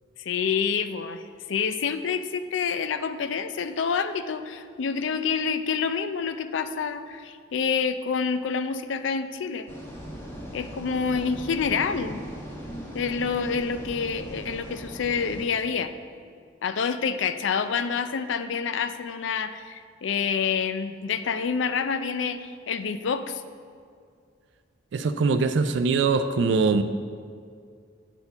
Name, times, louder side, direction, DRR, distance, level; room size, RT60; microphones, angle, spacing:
voice 1, 0.2-1.2 1.5-9.7 10.5-12.2 12.9-15.9 16.6-23.4, left 6 dB, 80° left, 11 dB, 0.4 m, -27 dB
sound 1, 9.7-15.5, equal, 10° left, 1.0 m, -39 dB
voice 2, 24.9-26.8, right 4 dB, 65° right, 10 dB, 0.3 m, -22 dB
8.1 x 4.4 x 6.9 m, 2.2 s
head